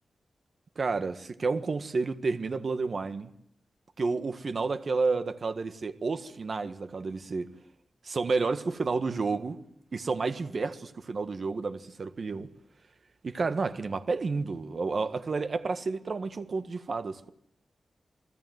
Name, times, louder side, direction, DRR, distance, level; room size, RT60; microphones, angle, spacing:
voice 1, 0.7-3.3 4.0-7.5 8.0-9.6 9.9-12.5 13.2-17.3, right 4 dB, 50° right, 1.6 m, -30 dB
29.5 x 20.0 x 9.5 m
wide cardioid pair, 130°, 0 cm